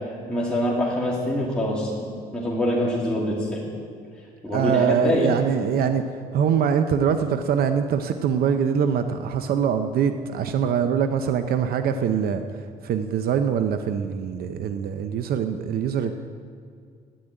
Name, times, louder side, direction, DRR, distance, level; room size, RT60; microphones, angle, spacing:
voice 1, 0.1-3.6 4.4-5.3, left 1 dB, 5° left, -5 dB, 2.4 m, -25 dB
voice 2, 4.5-6.0 6.3-16.1, right 7 dB, 65° right, 8 dB, 0.7 m, -23 dB
10.5 x 10.0 x 8.9 m, 2.1 s
cardioid pair, 110°, 17 cm